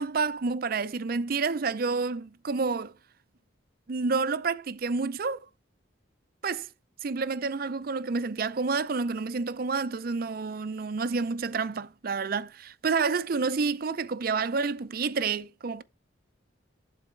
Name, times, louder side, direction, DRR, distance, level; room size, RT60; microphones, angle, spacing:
voice 1, 0.0-2.9 3.9-5.4 6.4-6.7 7.0-15.8, right 4 dB, 50° right, 0.5 m, -29 dB
11.5 x 4.0 x 4.5 m
head